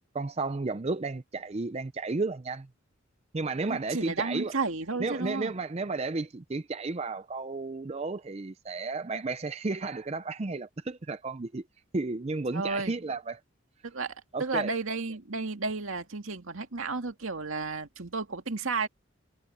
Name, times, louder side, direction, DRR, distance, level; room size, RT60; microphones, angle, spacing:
voice 1, 0.1-2.7 3.3-4.6 5.0-11.6 11.9-13.4 14.3-14.7, right 3 dB, 30° right, 0.5 m, -33 dB
voice 2, 3.7-5.5 12.5-12.9 13.8-18.9, right 4 dB, 75° right, 2.1 m, -32 dB
head